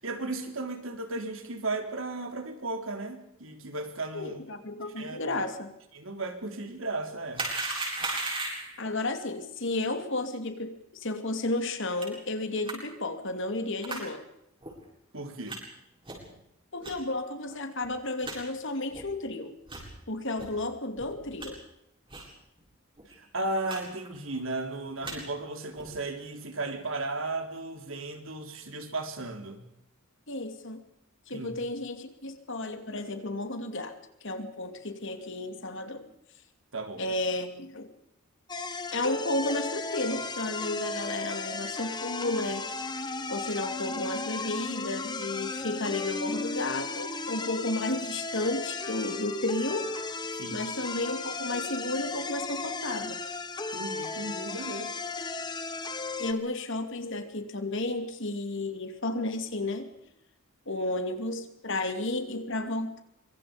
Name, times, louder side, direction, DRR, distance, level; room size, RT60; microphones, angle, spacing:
voice 1, 0.0-4.3 5.0-5.5 5.9-7.4 15.1-15.6 23.1-29.6 31.3-31.5 36.7-37.0 50.3-50.6 53.7-55.0, right 2 dB, 65° right, 5 dB, 3.8 m, -35 dB
voice 2, 4.1-5.7 8.8-14.2 16.7-19.6 20.1-21.6 30.3-30.8 31.3-33.9 34.2-36.1 37.0-37.9 38.9-42.7 43.3-49.9 50.5-53.2 56.2-59.9 60.7-63.0, left 2 dB, 60° left, 7 dB, 2.9 m, -32 dB
sound 1, 7.3-8.8 12.0-12.1 12.7-12.8 13.8-14.0 14.6-14.7 15.5-15.6 16.0-16.3 16.8-16.9 17.5-17.6 17.8-17.9 18.2-18.4 18.9-19.0 19.6-19.9 20.4-20.5 21.0-21.5 22.1-22.3 22.6-22.7 23.0-23.1 23.7-23.8 24.0-24.4 24.8-25.2 25.7-26.0, right 2 dB, 25° right, 7.7 m, -35 dB
sound 2, 38.5-56.3, left 3 dB, 20° left, 1.6 m, -35 dB
25.0 x 25.0 x 5.3 m, 0.81 s
head